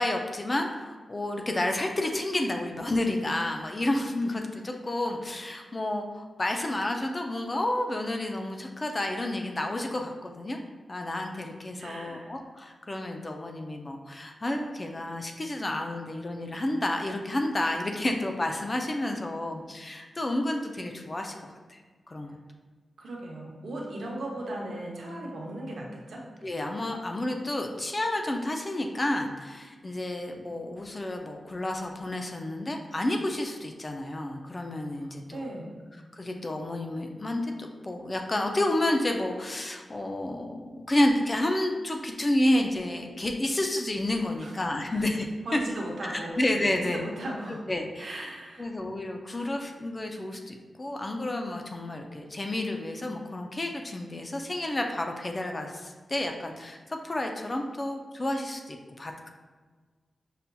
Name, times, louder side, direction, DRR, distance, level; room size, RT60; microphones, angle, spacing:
voice 1, 0.0-10.6 10.9-21.3 21.7-21.8 22.1-22.3 26.4-35.4 36.1-37.5 37.8-45.3 45.5-45.6 46.0-47.0 47.7-48.3 48.6-59.3, left 1 dB, 25° left, 3 dB, 0.3 m, -30 dB
voice 2, 11.8-12.3 23.0-26.3 35.3-35.8 44.4-45.1 45.4-46.4 46.7-47.7 48.0-48.7, right 1 dB, 75° right, -1 dB, 0.7 m, -37 dB
5.6 x 2.6 x 2.2 m, 1.4 s
wide cardioid pair, 160°, 0 cm